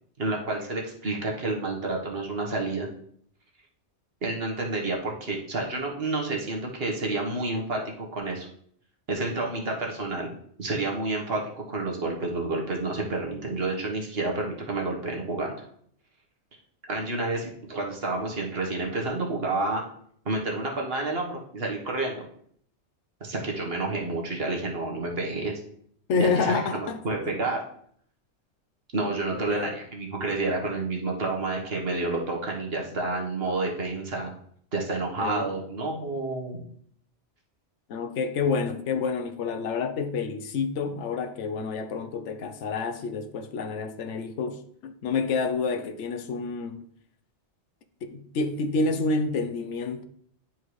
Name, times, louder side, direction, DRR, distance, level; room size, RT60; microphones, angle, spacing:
voice 1, 0.2-2.9 4.2-7.8 8.1-8.5 9.1-10.3 10.6-15.6 16.9-19.8 20.2-22.2 23.2-25.6 26.2-27.6 28.9-34.3 34.7-36.6, right 2 dB, 60° right, 1.6 m, -29 dB
voice 2, 26.1-27.0 29.3-29.8 35.2-35.5 37.9-46.8 48.0-50.0, left 4 dB, 85° left, 1.0 m, -28 dB
10.0 x 4.5 x 3.1 m
omnidirectional pair, 1.2 m